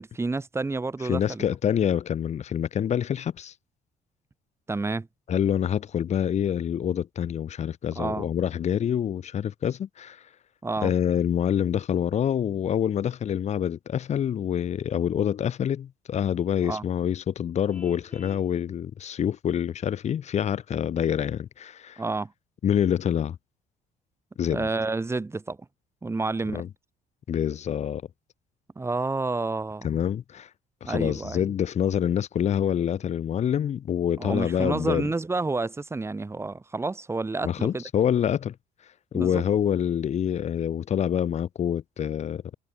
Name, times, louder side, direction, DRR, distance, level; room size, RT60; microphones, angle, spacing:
voice 1, 0.0-1.4 4.7-5.1 7.9-8.3 10.6-10.9 16.6-16.8 22.0-22.3 24.5-25.6 26.0-26.7 28.8-29.9 30.8-31.5 34.2-37.8 39.1-39.4, right 3 dB, 15° right, 1.2 m, -29 dB
voice 2, 1.0-3.5 5.3-10.2 10.8-22.0 22.6-23.4 24.4-24.7 26.5-26.7 27.3-28.0 29.8-30.5 30.8-35.1 37.4-38.5 39.1-42.4, left 9 dB, 40° left, 0.7 m, -26 dB
Vehicle horn car horn honking, 17.7-18.5, left 1 dB, 5° left, 4.9 m, -48 dB
cardioid pair, 110°, 17 cm